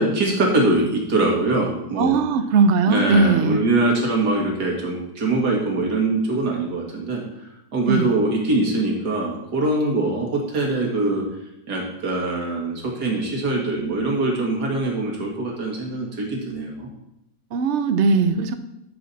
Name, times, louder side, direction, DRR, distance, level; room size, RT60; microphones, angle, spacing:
voice 1, 0.0-2.2 2.9-7.2 7.7-11.2 11.7-16.9, right 2 dB, 75° right, 0 dB, 2.5 m, -23 dB
voice 2, 2.0-3.6 7.9-8.1 17.5-18.5, right 4 dB, 55° right, 10 dB, 0.9 m, -19 dB
12.5 x 6.2 x 4.2 m, 0.84 s
omnidirectional pair, 1.8 m